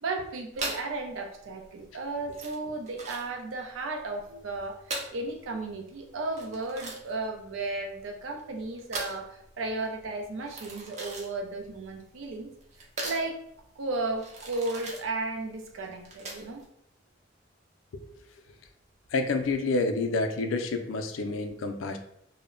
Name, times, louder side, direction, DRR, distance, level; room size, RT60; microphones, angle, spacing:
voice 1, 0.0-12.5 13.0-13.4 13.8-16.6, right 2 dB, 90° right, 3 dB, 0.5 m, -34 dB
sound 1, 0.5-16.7, right 2 dB, 35° right, 0.5 m, -40 dB
voice 2, 19.1-22.0, left 3 dB, 85° left, 6 dB, 0.4 m, -28 dB
2.1 x 2.0 x 3.6 m, 0.73 s
head